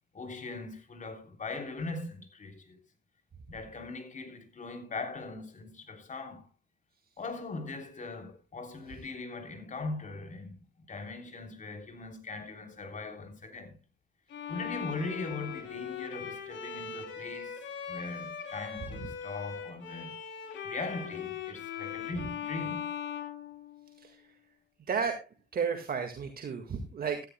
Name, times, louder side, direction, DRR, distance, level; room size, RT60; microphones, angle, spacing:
voice 1, 0.1-2.8 3.5-6.5 7.2-13.8 14.5-20.2 20.6-22.9, left 3 dB, 40° left, 3.4 m, -40 dB
Bowed string instrument, 14.3-24.1, left 8 dB, 70° left, 3.2 m, -40 dB
voice 2, 24.9-27.2, right 6 dB, 50° right, 1.8 m, -33 dB
16.5 x 13.5 x 2.2 m
cardioid pair, 90°, 20 cm